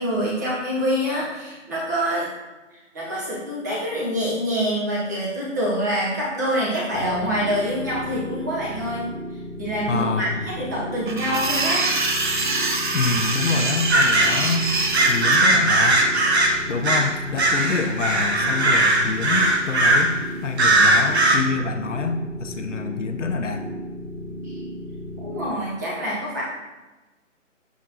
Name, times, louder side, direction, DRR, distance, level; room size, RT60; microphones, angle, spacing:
voice 1, 0.0-2.3 2.7-9.1 9.6-11.8 24.4-24.6 25.2-26.4, equal, 15° right, -5 dB, 0.8 m, -26 dB
sound 1, 6.9-25.5, equal, 70° right, 1.7 m, -35 dB
voice 2, 9.9-10.3 12.9-14.7 15.1-16.0 16.7-23.6, left 4 dB, 70° left, 6 dB, 0.6 m, -26 dB
sound 2, 11.1-15.4, right 3 dB, 40° right, 0.5 m, -24 dB
sound 3, 13.9-14.4 14.9-17.1 17.4-20.1 20.6-21.4, right 2 dB, 55° right, 1.0 m, -19 dB
6.7 x 5.1 x 2.8 m, 1.1 s
figure-of-eight pair, 155°, 38 cm